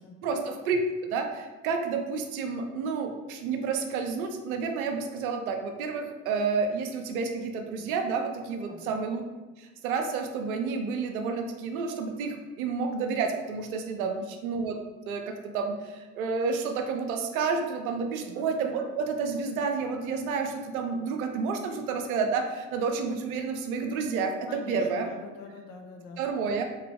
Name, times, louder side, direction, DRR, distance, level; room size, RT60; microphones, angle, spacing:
voice 1, 0.2-9.2 9.6-14.8 15.1-25.1 26.2-26.6, right 5 dB, 75° right, 4 dB, 0.6 m, -30 dB
voice 2, 18.2-18.5 24.5-26.2, left 3 dB, 60° left, 2 dB, 0.8 m, -44 dB
3.8 x 2.9 x 3.3 m, 1.2 s
figure-of-eight pair, 50°, 42 cm